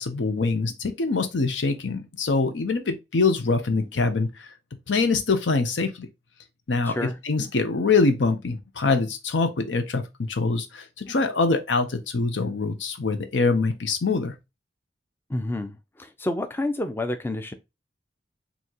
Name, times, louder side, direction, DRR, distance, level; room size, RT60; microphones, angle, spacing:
voice 1, 0.0-4.5 4.9-6.1 6.7-14.3, left 3 dB, 90° left, 0.7 m, -24 dB
voice 2, 6.8-7.2 15.3-17.5, left 1 dB, 10° left, 0.4 m, -29 dB
4.6 x 2.8 x 2.9 m
head